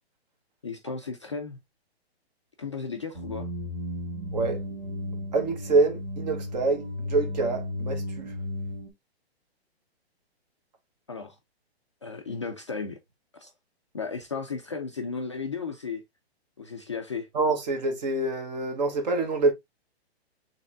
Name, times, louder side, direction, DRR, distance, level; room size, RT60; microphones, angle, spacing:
voice 1, 0.6-1.6 2.6-3.5 11.1-11.4 12.0-13.0 13.3-13.5 13.9-16.0 16.6-17.3, left 5 dB, 30° left, 0.4 m, -34 dB
sound 1, 3.1-8.9, left 1 dB, 20° right, 1.6 m, -34 dB
voice 2, 5.3-8.3 17.3-19.5, right 3 dB, 40° right, 1.3 m, -26 dB
6.4 x 3.3 x 2.5 m
hypercardioid pair, 170°, 32 cm